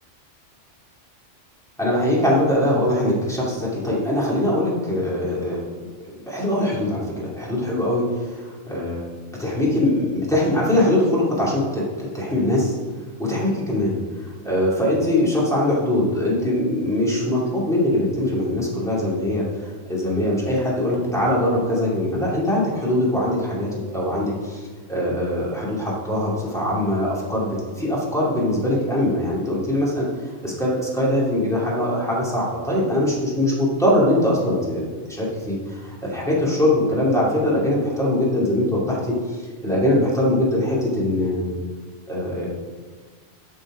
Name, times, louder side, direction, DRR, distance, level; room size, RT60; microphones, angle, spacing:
voice 1, 1.8-5.6 6.2-9.0 9.4-12.7 13.2-24.6 24.9-30.1 30.4-41.6 42.1-42.5, left 1 dB, ahead, -6 dB, 2.6 m, -22 dB
12.5 x 5.3 x 5.0 m, 1.4 s
omnidirectional pair, 1.2 m